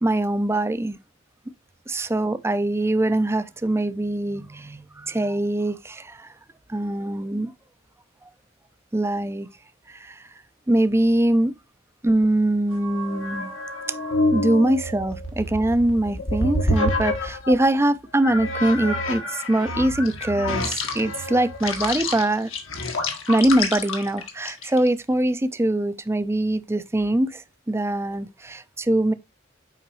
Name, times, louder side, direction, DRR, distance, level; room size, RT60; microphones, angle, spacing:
voice 1, 0.0-1.0 1.9-6.3 6.7-7.5 8.9-9.5 9.9-10.2 10.7-11.5 12.0-13.5 14.3-22.5 23.3-29.1, right 1 dB, 15° right, 0.5 m, -23 dB
sound 1, 12.7-17.7 18.2-24.9, left 2 dB, 70° left, 1.6 m, -28 dB
8.2 x 5.1 x 3.1 m
head